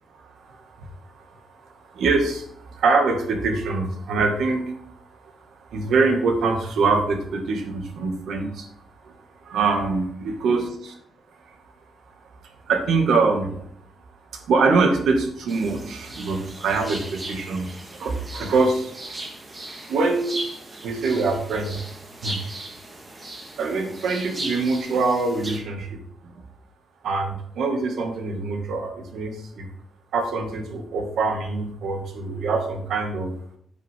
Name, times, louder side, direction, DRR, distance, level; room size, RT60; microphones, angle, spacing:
voice 1, 0.1-5.3 5.6-8.7 9.0-9.1 9.4-10.9 11.5-11.6 12.4-13.7 14.3-18.9 19.9-20.4 20.8-21.9 22.2-22.5 23.6-26.4 27.0-29.7 30.1-33.4, right 3 dB, 90° right, 4 dB, 2.0 m, -24 dB
sound 1, 15.5-25.6, right 2 dB, 25° right, 1.7 m, -38 dB
9.1 x 8.7 x 3.7 m, 0.67 s
wide cardioid pair, 170°, 0 cm